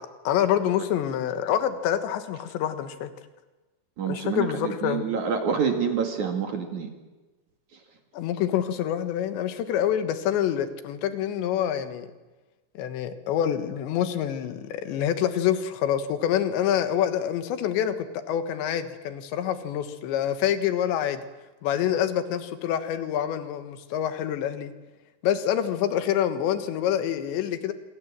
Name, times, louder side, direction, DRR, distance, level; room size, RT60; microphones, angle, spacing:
voice 1, 0.3-3.1 4.1-5.1 8.1-12.1 12.8-21.2 21.6-24.7 25.2-27.7, left 10 dB, 70° left, 9 dB, 3.3 m, -26 dB
voice 2, 4.0-6.9, right 6 dB, 50° right, 4 dB, 2.6 m, -27 dB
27.0 x 25.0 x 7.6 m, 1.2 s
omnidirectional pair, 6.0 m